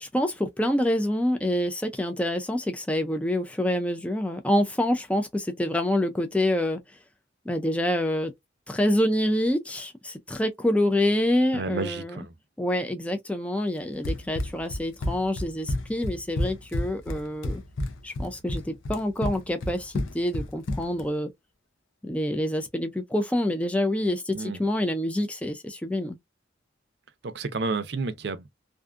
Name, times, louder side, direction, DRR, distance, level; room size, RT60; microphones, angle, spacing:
voice 1, 0.0-6.8 7.5-8.3 8.7-12.2 12.6-17.6 18.0-21.3 22.0-26.2, left 1 dB, 5° left, 0.3 m, -26 dB
voice 2, 11.5-12.3 24.3-24.6 27.2-28.6, right 3 dB, 55° right, 0.5 m, -31 dB
Run, 14.0-21.1, left 1 dB, 85° left, 0.6 m, -30 dB
2.5 x 2.4 x 2.4 m
head